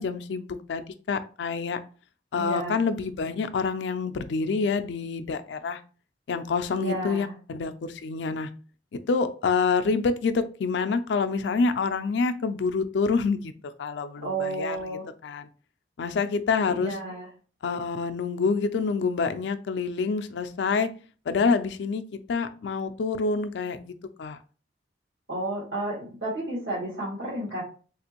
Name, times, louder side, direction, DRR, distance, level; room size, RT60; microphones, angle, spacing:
voice 1, 0.0-1.8 2.3-5.8 6.3-8.5 8.9-13.5 13.8-14.8 15.2-15.5 16.0-17.0 17.6-20.9 21.3-23.9 24.2-24.4, left 4 dB, 75° left, 9 dB, 0.4 m, -27 dB
voice 2, 2.3-2.8 6.8-7.3 14.2-15.0 16.7-17.3 25.3-27.6, right 2 dB, 85° right, -10 dB, 1.8 m, -32 dB
3.4 x 2.5 x 2.9 m, 0.38 s
head